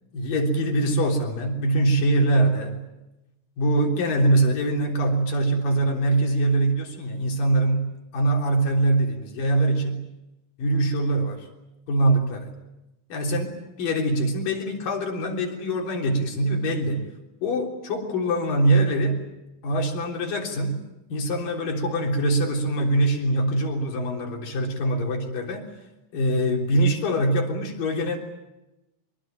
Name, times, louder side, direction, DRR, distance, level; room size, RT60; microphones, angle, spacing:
voice 1, 0.1-2.8 3.6-7.9 8.1-10.1 10.6-11.5 11.9-12.5 13.1-17.1 17.4-19.3 19.6-20.8 21.1-25.7 26.1-28.2, right 1 dB, 80° left, 2 dB, 5.3 m, -23 dB
25.0 x 23.5 x 9.0 m, 0.94 s
omnidirectional pair, 3.9 m